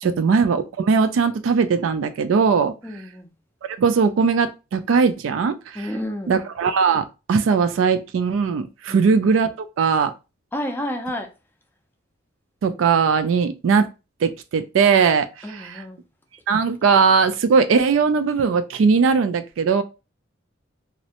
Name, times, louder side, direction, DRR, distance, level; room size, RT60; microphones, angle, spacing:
voice 1, 0.0-2.7 3.8-5.9 6.3-10.1 12.6-13.9 14.2-15.8 16.5-19.8, right 5 dB, 75° right, 0.3 m, -19 dB
voice 2, 2.8-3.3 5.8-6.3 8.9-9.0 10.5-11.3 15.4-16.0, left 1 dB, 10° left, 0.4 m, -30 dB
2.5 x 2.0 x 2.8 m
head